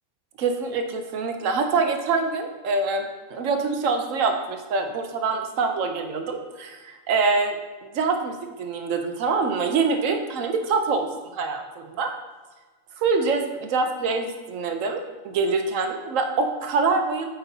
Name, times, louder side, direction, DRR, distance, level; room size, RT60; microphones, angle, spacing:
voice 1, 0.4-7.6 7.8-11.1 11.3-12.1 13.0-17.3, right 4 dB, 70° right, 5 dB, 1.0 m, -25 dB
8.0 x 5.3 x 2.7 m, 1.3 s
omnidirectional pair, 1.4 m